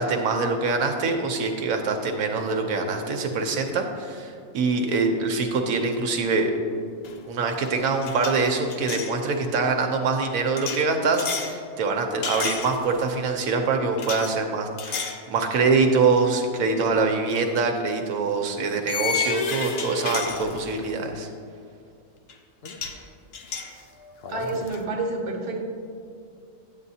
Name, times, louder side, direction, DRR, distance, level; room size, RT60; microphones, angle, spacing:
voice 1, 0.0-6.5 7.3-21.3, right 4 dB, 80° right, 4 dB, 1.1 m, -24 dB
sound 1, 7.0-7.3 7.5-9.2 10.6-11.6 12.2-13.1 14.0-14.3 14.8-15.2 15.7-15.9 17.4-17.5 18.9-20.9 22.3-22.4 22.6-23.0 23.3-24.8, left 5 dB, 60° left, 0.7 m, -31 dB
voice 2, 24.3-25.6, right 2 dB, 40° right, 0 dB, 0.9 m, -29 dB
9.9 x 8.1 x 2.7 m, 2.4 s
omnidirectional pair, 1.4 m